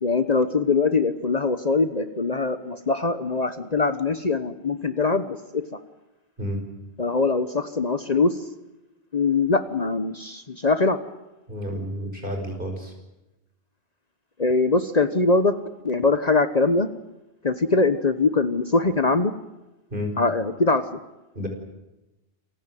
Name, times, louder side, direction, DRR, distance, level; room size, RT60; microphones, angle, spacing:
voice 1, 0.0-5.7 7.0-8.4 9.1-11.0 14.4-15.5 15.8-16.9 17.4-19.3 20.2-20.9, left 3 dB, 40° left, 11 dB, 1.1 m, -22 dB
voice 2, 11.5-12.9 19.9-20.1 21.3-21.5, equal, 50° right, 4 dB, 5.9 m, -30 dB
27.5 x 16.0 x 9.3 m, 1.0 s
omnidirectional pair, 1.1 m